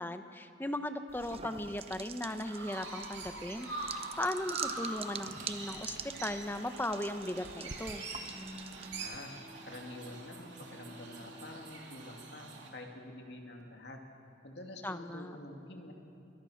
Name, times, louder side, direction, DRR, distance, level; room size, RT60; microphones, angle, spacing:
voice 1, 0.0-8.0 14.8-15.4, left 1 dB, 10° left, 8 dB, 0.9 m, -37 dB
sound 1, 1.1-9.2, right 7 dB, 30° right, 0.8 m, -45 dB
Chirp tweet, 2.1-12.7, right 3 dB, 75° right, 3.5 m, -44 dB
Bowed string instrument, 8.2-13.2, left 1 dB, 90° right, 7.0 m, -53 dB
voice 2, 9.0-9.3 9.7-14.0 14.4-15.9, left 1 dB, 65° left, 2 dB, 2.6 m, -47 dB
23.0 x 22.0 x 6.5 m, 2.6 s
head